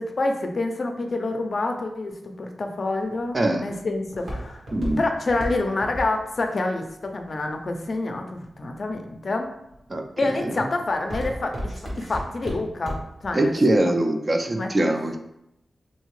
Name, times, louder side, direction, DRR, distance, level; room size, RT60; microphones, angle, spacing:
voice 1, 0.0-2.1 2.4-4.6 5.0-9.5 10.2-13.6 13.9-14.0 14.5-14.7, left 2 dB, 60° left, 4 dB, 0.4 m, -27 dB
Walk footsteps, 3.0-8.1 8.7-9.2 9.7-10.0 10.4-13.3 13.6-13.7, equal, 60° right, 1.2 m, -33 dB
voice 2, 13.3-15.2, right 1 dB, 40° right, 4 dB, 0.4 m, -22 dB
2.7 x 2.7 x 3.1 m, 0.83 s
cardioid pair, 55°, 0 cm